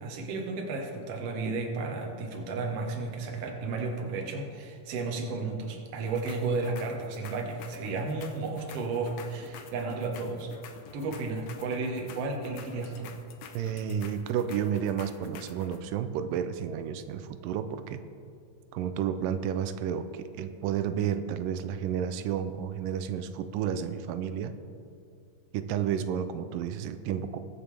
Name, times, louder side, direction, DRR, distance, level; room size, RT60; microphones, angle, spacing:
voice 1, 0.0-10.5 10.9-13.1, right 3 dB, 55° right, 1 dB, 2.0 m, -33 dB
sound 1, 6.1-15.8, left 6 dB, 70° left, 1.8 m, -49 dB
voice 2, 13.5-18.0 18.7-24.5 25.5-27.4, right 8 dB, 90° right, 10 dB, 2.2 m, -31 dB
22.0 x 7.3 x 3.3 m, 2.4 s
omnidirectional pair, 3.8 m